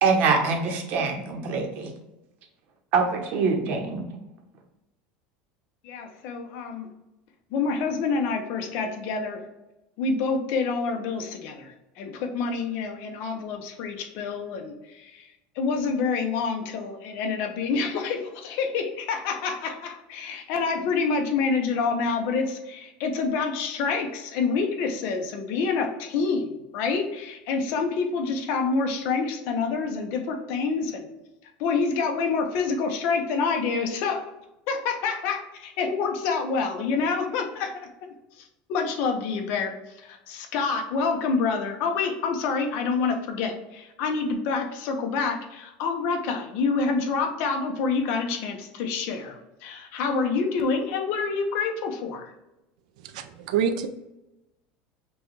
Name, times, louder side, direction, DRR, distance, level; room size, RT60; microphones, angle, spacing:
voice 1, 0.0-1.9 2.9-4.0, right 4 dB, 45° right, 3 dB, 0.9 m, -24 dB
voice 2, 5.8-6.9 7.5-9.4 10.0-15.3 15.6-31.1 31.6-34.2 34.7-37.7 38.4-52.3, left 4 dB, 50° left, 4 dB, 0.8 m, -27 dB
voice 3, 53.0-53.9, right 7 dB, 85° right, 8 dB, 0.5 m, -26 dB
6.0 x 2.3 x 3.1 m, 0.96 s
cardioid pair, 170°, 4 cm